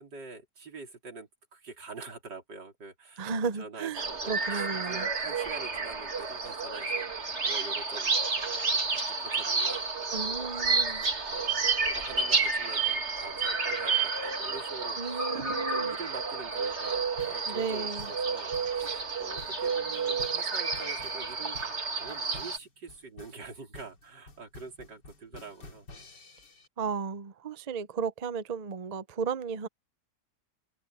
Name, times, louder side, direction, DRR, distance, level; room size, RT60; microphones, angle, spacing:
voice 1, 0.0-11.6 11.9-26.1, right 4 dB, 75° right, 4.1 m, -46 dB
voice 2, 3.2-5.1 10.1-11.0 15.0-16.0 17.5-18.1 26.8-29.7, right 5 dB, 55° right, 0.4 m, -34 dB
sound 1, 3.9-22.6, right 4 dB, 40° right, 2.3 m, -30 dB
sound 2, 17.2-26.7, left 2 dB, 75° left, 3.1 m, -50 dB
omnidirectional pair, 1.9 m